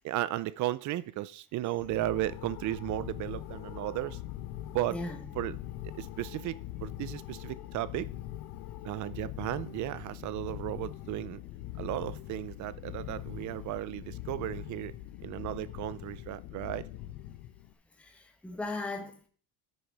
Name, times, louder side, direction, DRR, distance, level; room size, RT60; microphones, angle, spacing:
voice 1, 0.0-4.2 4.7-5.0 5.3-5.6 6.0-8.1 8.8-11.4 11.8-14.9 15.2-16.9, right 15 dB, 45° right, 0.6 m, -35 dB
sound 1, 1.7-17.7, left 14 dB, 90° left, 0.9 m, -42 dB
voice 2, 18.0-19.3, left 2 dB, 5° left, 1.1 m, -37 dB
9.9 x 6.6 x 4.7 m
cardioid pair, 150°, 40 cm